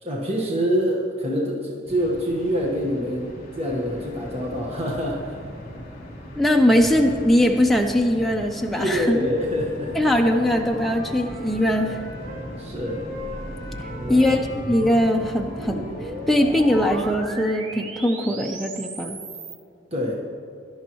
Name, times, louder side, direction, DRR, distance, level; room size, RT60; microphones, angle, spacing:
voice 1, 0.0-5.4 8.7-9.9 12.6-13.0 14.0-14.4 19.9-20.1, equal, 30° right, -3 dB, 1.4 m, -26 dB
sound 1, 1.9-17.2, equal, 45° left, 3.1 m, -38 dB
voice 2, 6.4-9.2 10.0-12.0 14.1-14.4 14.7-19.2, left 1 dB, ahead, 1 dB, 0.6 m, -21 dB
Wind instrument woodwind instrument, 9.0-12.5 12.8-17.0, equal, 50° right, 3.1 m, -41 dB
sound 2, 12.9-19.6, right 2 dB, 85° right, 1.3 m, -38 dB
17.5 x 12.0 x 3.1 m, 2.5 s
head